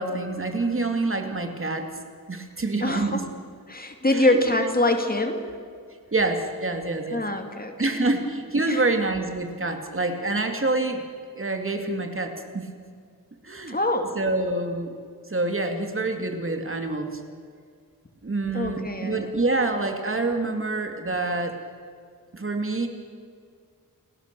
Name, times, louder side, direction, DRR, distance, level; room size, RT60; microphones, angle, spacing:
voice 1, 0.0-1.9 2.3-3.2 4.1-4.7 6.1-7.2 7.8-11.0 11.3-12.6 13.4-13.8 14.2-14.9 15.3-17.2 18.2-21.6 22.3-22.9, right 2 dB, 35° right, 5 dB, 2.6 m, -26 dB
voice 2, 2.8-3.3 3.7-5.5 7.1-8.0 8.6-8.8 13.7-14.2 18.5-19.3, left 1 dB, 25° left, 5 dB, 2.4 m, -24 dB
29.5 x 18.5 x 6.8 m, 2.1 s
wide cardioid pair, 115°, 35 cm